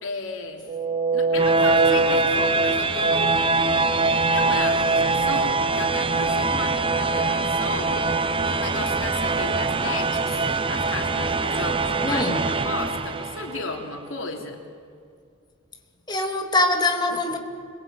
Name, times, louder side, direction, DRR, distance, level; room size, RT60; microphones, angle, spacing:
voice 1, 0.0-0.7 1.1-3.3 4.3-12.3 12.6-14.6, left 3 dB, 80° left, 3.3 m, -34 dB
sound 1, 0.7-13.7, right 3 dB, 25° right, 0.9 m, -23 dB
voice 2, 12.0-12.5 16.1-17.4, left 2 dB, 20° left, 2.8 m, -23 dB
29.5 x 22.5 x 8.9 m
head